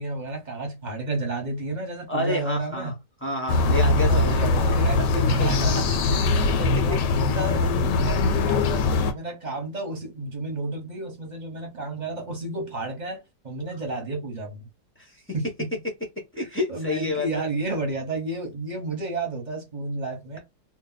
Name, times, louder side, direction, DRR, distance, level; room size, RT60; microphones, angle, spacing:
voice 1, 0.0-2.9 4.1-5.0 5.3-13.2 13.4-14.7 15.3-15.4 16.7-20.4, right 2 dB, 30° right, 0.9 m, -31 dB
voice 2, 2.1-2.9 3.2-4.6 5.1-5.5 15.0-15.2 16.3-17.4, left 2 dB, 15° left, 0.5 m, -29 dB
sound 1, 3.5-9.1, left 3 dB, 85° left, 1.2 m, -21 dB
2.7 x 2.2 x 3.8 m
omnidirectional pair, 1.8 m